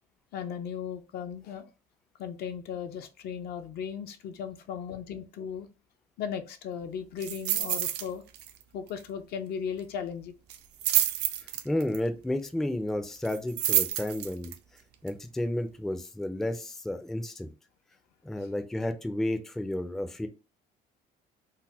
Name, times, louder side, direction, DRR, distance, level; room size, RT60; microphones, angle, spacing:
voice 1, 0.3-1.7 2.2-5.7 6.2-8.2 8.7-10.3, left 7 dB, 70° left, 8 dB, 0.5 m, -36 dB
sound 1, 7.2-8.1 8.3-8.6 8.9-9.0 10.5-12.0 13.2-14.5 15.1-15.2, right 11 dB, 80° right, 0.5 m, -28 dB
voice 2, 11.6-14.5 15.0-17.5 18.2-20.3, left 1 dB, ahead, 7 dB, 0.3 m, -32 dB
3.9 x 2.1 x 2.7 m, 0.32 s
cardioid pair, 110°, 17 cm